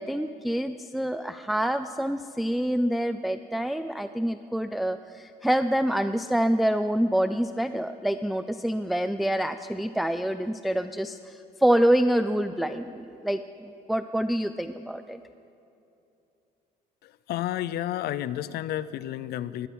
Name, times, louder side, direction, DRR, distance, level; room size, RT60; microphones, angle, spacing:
voice 1, 0.0-15.2, right 1 dB, ahead, 10 dB, 0.4 m, -26 dB
voice 2, 17.0-19.7, left 12 dB, 70° left, 17 dB, 0.6 m, -31 dB
20.5 x 13.0 x 5.4 m, 2.8 s
cardioid pair, 110°, 17 cm